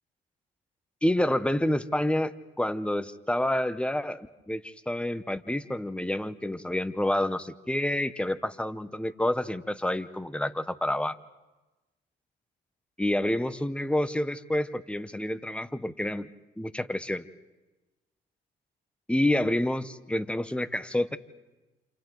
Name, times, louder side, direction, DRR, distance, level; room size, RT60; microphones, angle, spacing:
voice 1, 1.0-11.2 13.0-16.3 16.6-17.2 19.1-21.2, left 1 dB, 5° left, 12 dB, 0.8 m, -28 dB
28.5 x 28.0 x 3.9 m, 1.1 s
cardioid pair, 90°, 20 cm